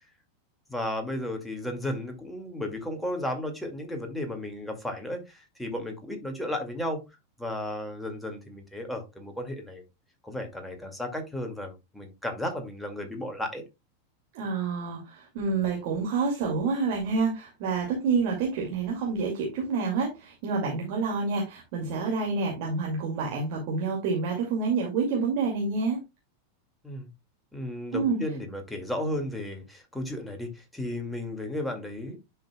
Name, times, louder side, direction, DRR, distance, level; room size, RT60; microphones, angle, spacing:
voice 1, 0.7-7.0 7.4-9.8 10.2-13.6 26.8-27.1 27.5-32.2, left 1 dB, 5° left, 3 dB, 2.2 m, -34 dB
voice 2, 14.3-26.0 27.9-28.2, right 4 dB, 45° right, -1 dB, 2.3 m, -28 dB
10.5 x 5.7 x 2.3 m, 0.23 s
figure-of-eight pair, 90°, 0 cm